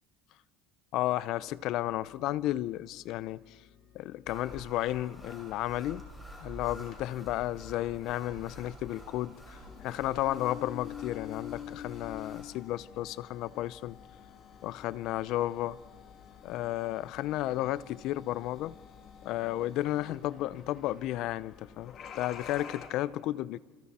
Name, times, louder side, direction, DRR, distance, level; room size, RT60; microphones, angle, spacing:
voice 1, 0.9-3.6 3.9-6.1 6.4-14.0 14.6-15.8 16.4-18.8 19.2-23.6, left 14 dB, 60° left, 0.5 m, -33 dB
sound 1, 1.3-8.6, left 8 dB, 80° left, 3.1 m, -62 dB
sound 2, 4.3-12.5, equal, 10° left, 5.0 m, -49 dB
sound 3, 6.8-22.9, left 9 dB, 45° left, 2.5 m, -48 dB
27.0 x 26.5 x 4.2 m
cardioid pair, 145°, 0 cm